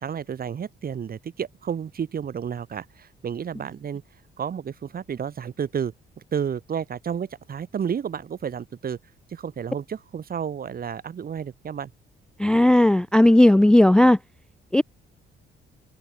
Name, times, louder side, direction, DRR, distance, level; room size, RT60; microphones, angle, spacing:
voice 1, 0.0-4.0 4.4-5.9 6.3-9.0 9.3-11.9, right 7 dB, 50° right, 1.9 m, -31 dB
voice 2, 12.4-14.2 14.7-14.8, left 1 dB, 5° left, 0.3 m, -15 dB
cardioid pair, 90°, 20 cm